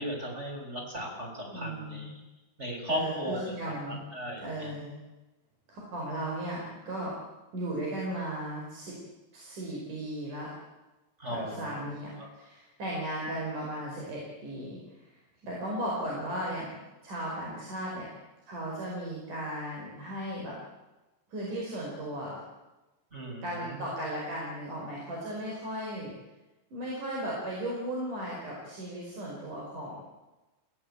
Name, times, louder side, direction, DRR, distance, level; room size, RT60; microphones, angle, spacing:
voice 1, 0.0-2.1 2.6-4.7 11.2-11.8 12.2-12.3 23.1-23.9, equal, 15° right, -1 dB, 6.8 m, -36 dB
voice 2, 1.5-2.1 2.9-4.0 4.4-5.0 5.7-7.2 7.5-9.0 9.3-10.5 11.3-15.1 15.4-16.7 17.0-18.1 18.5-20.6 21.3-22.4 23.4-26.1 26.7-30.0, right 1 dB, 55° right, -3 dB, 6.5 m, -36 dB
28.5 x 17.5 x 8.8 m, 1.1 s
omnidirectional pair, 4.4 m